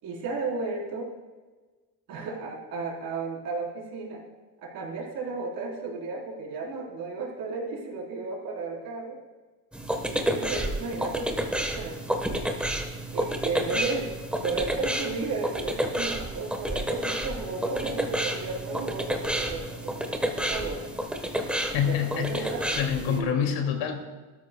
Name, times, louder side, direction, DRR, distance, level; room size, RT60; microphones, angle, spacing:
voice 1, 0.0-1.1 2.1-4.2 4.6-9.2 10.0-12.5 13.1-20.9 21.5-23.4, right 3 dB, 55° right, -2 dB, 4.0 m, -34 dB
sound 1, 9.7-23.2, right 1 dB, 5° right, 1.2 m, -30 dB
voice 2, 21.4-22.5 22.7-24.0, left 8 dB, 80° left, 3 dB, 2.5 m, -27 dB
18.0 x 13.5 x 2.3 m, 1.3 s
cardioid pair, 140°, 42 cm